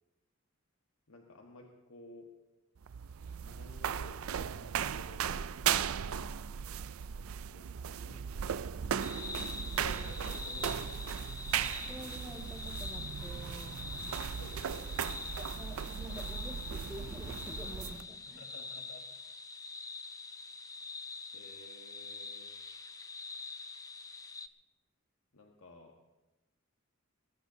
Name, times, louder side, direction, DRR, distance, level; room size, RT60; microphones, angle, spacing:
voice 1, 1.1-2.3 3.4-5.8 7.3-11.3 14.4-15.2 18.3-19.0 20.5-20.6 21.3-22.5 25.3-25.9, left 2 dB, 85° left, 1 dB, 1.4 m, -54 dB
sound 1, 2.8-18.0, right 8 dB, 85° right, 0.5 m, -37 dB
sound 2, 9.0-24.5, left 4 dB, 15° left, 0.5 m, -45 dB
voice 2, 11.9-13.8 15.4-18.4, right 1 dB, 10° right, 0 dB, 1.9 m, -48 dB
21.5 x 18.5 x 2.8 m, 1.1 s
head